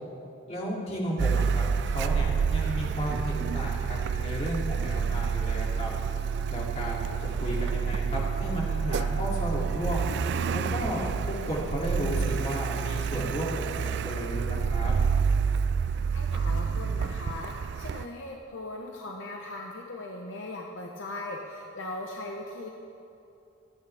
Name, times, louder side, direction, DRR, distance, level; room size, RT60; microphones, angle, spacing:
voice 1, 0.5-5.9 6.5-10.1 10.5-14.9, equal, 30° left, -5 dB, 2.9 m, -33 dB
Car, 1.2-18.1, right 6 dB, 55° right, 0.3 m, -28 dB
voice 2, 15.9-22.7, left 2 dB, 60° left, 0 dB, 0.9 m, -39 dB
25.5 x 9.5 x 3.5 m, 2.8 s
head